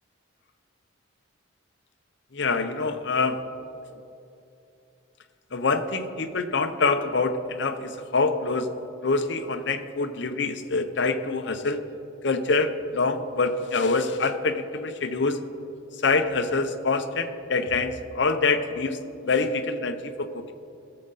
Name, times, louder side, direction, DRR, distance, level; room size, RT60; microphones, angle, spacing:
voice 1, 2.3-3.4 5.5-8.7 9.0-11.8 12.2-15.4 16.0-19.0 19.2-20.5, left 3 dB, 55° left, 9 dB, 0.7 m, -25 dB
19.0 x 7.7 x 4.0 m, 2.9 s
head